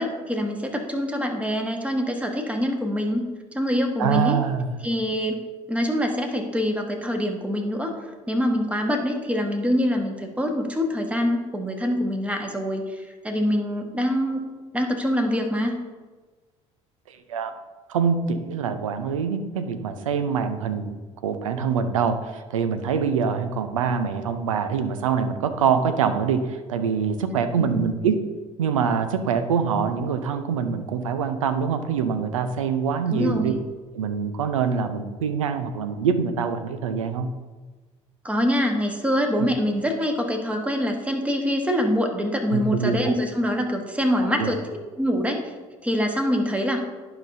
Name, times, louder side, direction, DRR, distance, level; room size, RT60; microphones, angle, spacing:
voice 1, 0.0-3.2 3.5-4.4 4.8-5.4 5.7-14.4 14.7-15.8 27.6-27.8 33.1-33.6 38.2-45.5 45.8-46.8, equal, 10° right, 3 dB, 1.4 m, -25 dB
voice 2, 4.0-4.7 17.1-17.5 17.9-20.9 21.2-28.2 28.6-33.5 33.9-37.3 42.5-43.2 44.4-44.5, right 6 dB, 85° right, 9 dB, 0.6 m, -24 dB
11.0 x 5.8 x 2.7 m, 1.3 s
hypercardioid pair, 55°, 16 cm